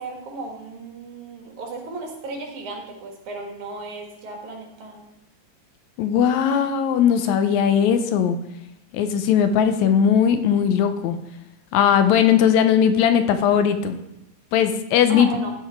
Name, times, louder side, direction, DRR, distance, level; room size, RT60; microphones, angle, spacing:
voice 1, 0.0-5.0 15.1-15.5, right 3 dB, 85° right, 1 dB, 3.2 m, -35 dB
voice 2, 6.0-8.4 8.9-11.2 11.7-14.0 14.5-15.3, left 8 dB, 80° left, 8 dB, 2.0 m, -18 dB
14.0 x 4.9 x 4.5 m, 0.90 s
omnidirectional pair, 3.4 m